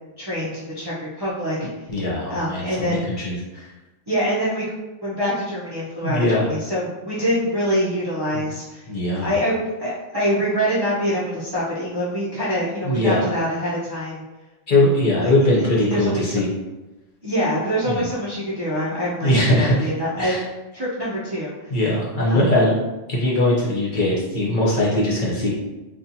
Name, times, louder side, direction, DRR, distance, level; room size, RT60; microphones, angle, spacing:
voice 1, 0.2-1.9 2.3-3.1 4.1-4.7 5.0-8.8 9.2-14.2 15.2-15.3 15.8-16.4 17.2-20.4 20.7-21.7 22.3-22.5, equal, 25° right, -9 dB, 0.6 m, -25 dB
voice 2, 1.9-3.7 6.0-6.5 8.9-9.4 12.8-13.3 14.7-16.5 17.9-18.1 19.2-19.9 20.2-20.4 21.7-22.7 23.1-25.5, left 1 dB, 45° left, -6 dB, 0.9 m, -20 dB
4.2 x 2.4 x 2.7 m, 1.1 s
omnidirectional pair, 1.2 m